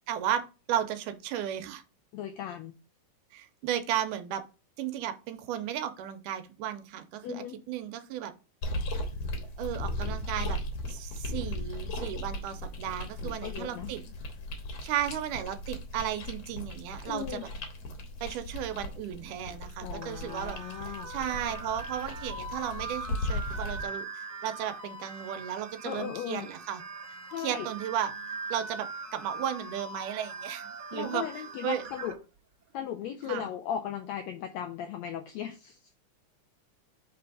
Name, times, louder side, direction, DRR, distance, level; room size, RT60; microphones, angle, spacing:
voice 1, 0.1-0.4 0.7-1.8 3.3-4.4 4.8-8.3 9.6-10.6 10.9-14.0 14.8-17.5 18.2-20.6 20.8-26.8 27.4-28.1 28.5-31.2 31.6-31.8 33.3-33.5, right 10 dB, 85° right, 9 dB, 2.1 m, -34 dB
voice 2, 2.1-2.8 7.2-7.6 13.2-13.9 17.1-17.5 19.8-21.1 25.8-26.5 27.3-27.7 30.9-32.1 32.7-35.8, left 9 dB, 85° left, 5 dB, 1.5 m, -37 dB
sound 1, 8.6-23.9, left 1 dB, 65° left, 2.0 m, -37 dB
sound 2, 20.0-32.1, right 3 dB, 40° right, 2.3 m, -41 dB
5.1 x 3.4 x 5.4 m, 0.32 s
omnidirectional pair, 3.6 m